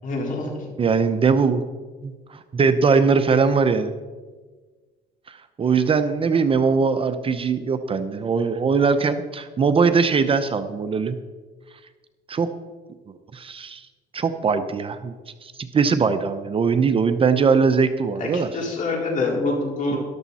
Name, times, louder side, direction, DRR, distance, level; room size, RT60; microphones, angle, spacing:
voice 1, 0.0-0.7 18.2-20.0, left 2 dB, 50° left, -1 dB, 4.4 m, -26 dB
voice 2, 0.8-1.6 2.0-2.1 2.5-3.9 5.3-11.2 12.3-12.5 13.3-13.9 14.1-15.1 15.4-18.5 19.9-20.0, right 5 dB, 35° right, 10 dB, 0.8 m, -21 dB
13.5 x 12.5 x 4.2 m, 1.4 s
cardioid pair, 110°, 17 cm